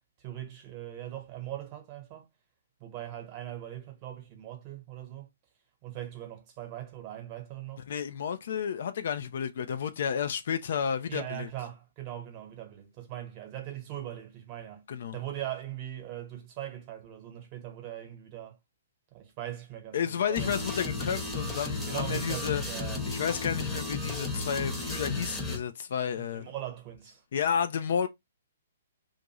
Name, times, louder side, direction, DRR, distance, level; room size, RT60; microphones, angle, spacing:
voice 1, 0.2-2.3 2.8-5.3 5.8-7.8 11.1-14.8 15.1-18.6 19.1-20.5 21.9-23.1 26.2-27.2, right 12 dB, 35° right, 1.1 m, -40 dB
voice 2, 7.9-11.5 14.9-15.2 19.9-22.6 23.1-26.5 27.3-28.1, left 7 dB, 55° left, 0.4 m, -31 dB
sound 1, 20.4-25.6, left 2 dB, 5° left, 0.9 m, -34 dB
2.6 x 2.5 x 2.9 m
figure-of-eight pair, 120°, 0 cm